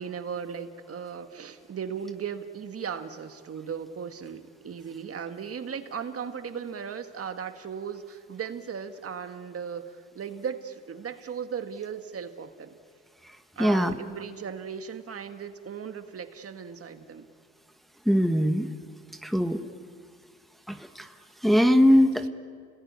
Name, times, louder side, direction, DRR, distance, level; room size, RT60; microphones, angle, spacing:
voice 1, 0.0-12.8 13.6-17.3, right 7 dB, 50° right, 8 dB, 1.8 m, -37 dB
voice 2, 13.6-13.9 18.0-18.7 19.2-19.6 20.7-21.1 21.4-22.2, equal, ahead, 7 dB, 1.4 m, -21 dB
29.5 x 19.5 x 9.7 m, 2.1 s
cardioid pair, 90°, 30 cm